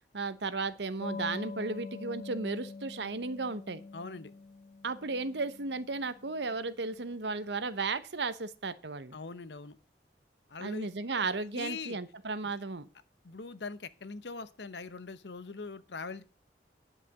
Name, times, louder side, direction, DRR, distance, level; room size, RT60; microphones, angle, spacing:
voice 1, 0.1-3.8 4.8-9.1 10.6-12.9, right 3 dB, 75° right, 13 dB, 1.0 m, -34 dB
sound 1, 1.0-7.2, left 4 dB, 45° left, 0.5 m, -45 dB
voice 2, 3.9-4.3 9.1-9.8 10.5-10.9 11.2-11.3 11.5-12.0 12.4-12.5 13.2-16.2, left 4 dB, 75° left, 14 dB, 0.9 m, -42 dB
10.5 x 5.9 x 8.0 m, 0.36 s
head